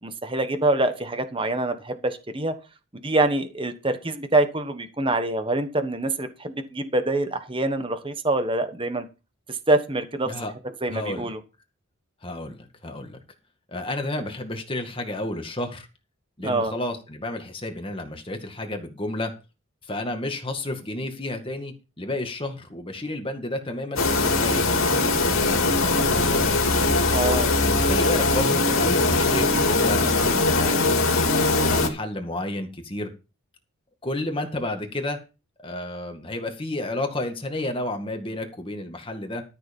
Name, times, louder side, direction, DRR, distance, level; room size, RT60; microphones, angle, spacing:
voice 1, 0.0-2.5 2.9-9.1 9.5-10.3 10.8-11.4 16.4-16.7 27.1-27.5, right 2 dB, 25° right, 9 dB, 1.3 m, -25 dB
voice 2, 10.9-11.3 12.2-13.2 13.7-15.9 16.4-19.3 19.8-24.6 25.0-26.7 27.6-30.9 31.3-33.1 34.0-35.2 35.6-39.4, left 1 dB, 25° left, 4 dB, 2.1 m, -31 dB
sound 1, 24.0-31.9, left 3 dB, 75° left, 2.3 m, -21 dB
13.0 x 6.7 x 5.4 m, 0.30 s
head